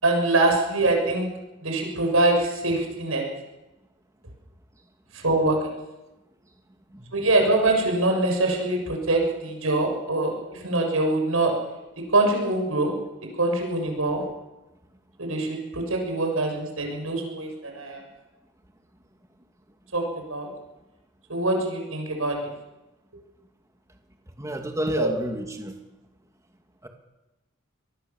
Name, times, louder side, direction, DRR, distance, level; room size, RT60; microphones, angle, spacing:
voice 1, 0.0-1.3 1.6-3.2 5.1-5.6 7.1-11.5 12.1-12.9 13.4-14.2 15.2-18.0 19.9-20.0 20.3-20.5 21.3-22.4 24.9-25.1, right 2 dB, 80° right, 2 dB, 6.6 m, -24 dB
voice 2, 24.4-25.7 26.8-26.9, right 1 dB, 15° right, 3 dB, 2.4 m, -30 dB
25.0 x 20.5 x 7.2 m, 1.0 s
head